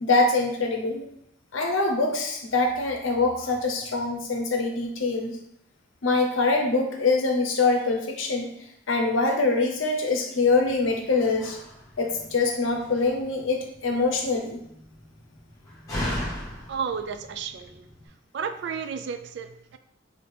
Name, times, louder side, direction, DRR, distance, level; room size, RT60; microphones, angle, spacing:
voice 1, 0.0-1.1 1.5-5.4 6.0-8.5 8.9-11.6 12.0-14.6, left 3 dB, 80° left, 3 dB, 0.7 m, -24 dB
Slam, 10.4-18.1, left 1 dB, 20° left, 1.4 m, -38 dB
voice 2, 16.7-17.9 18.3-19.8, right 6 dB, 60° right, 9 dB, 0.3 m, -32 dB
4.2 x 2.8 x 3.3 m, 0.76 s
head